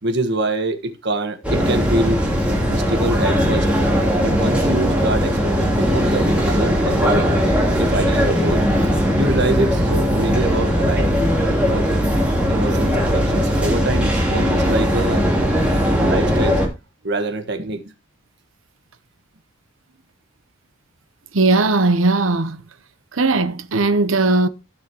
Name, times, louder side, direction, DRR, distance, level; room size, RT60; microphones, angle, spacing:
voice 1, 0.0-2.2 2.7-3.7 4.2-7.3 7.7-8.9 9.1-11.3 11.7-11.9 12.5-15.3 15.9-16.6 17.0-17.8, right 2 dB, 60° right, 1.5 m, -25 dB
sound 1, 1.4-16.7, equal, 5° right, 3.1 m, -19 dB
voice 2, 21.3-22.6 23.1-24.5, right 3 dB, 80° right, 0.9 m, -18 dB
16.0 x 6.3 x 3.0 m
head